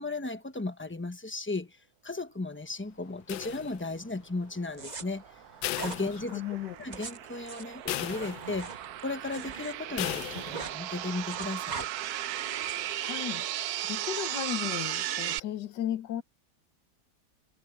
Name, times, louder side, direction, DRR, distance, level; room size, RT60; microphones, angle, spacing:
voice 1, 0.0-1.8 2.0-5.2 5.8-6.4 6.8-11.9, left 3 dB, 15° left, 0.5 m, -35 dB
sound 1, 3.3-4.1 5.6-6.8 7.1-7.2 7.9-8.8 10.0-10.8, left 15 dB, 85° left, 1.4 m, -36 dB
sound 2, 4.6-15.4, right 13 dB, 70° right, 1.0 m, -36 dB
sound 3, 4.7-5.0 5.7-6.0 6.8-9.7 10.0-10.8 11.1-11.9 12.4-12.9, right 4 dB, 30° right, 1.0 m, -41 dB
voice 2, 6.0-6.7 12.6-13.5 13.9-16.2, left 11 dB, 70° left, 1.5 m, -35 dB
omnidirectional pair, 2.0 m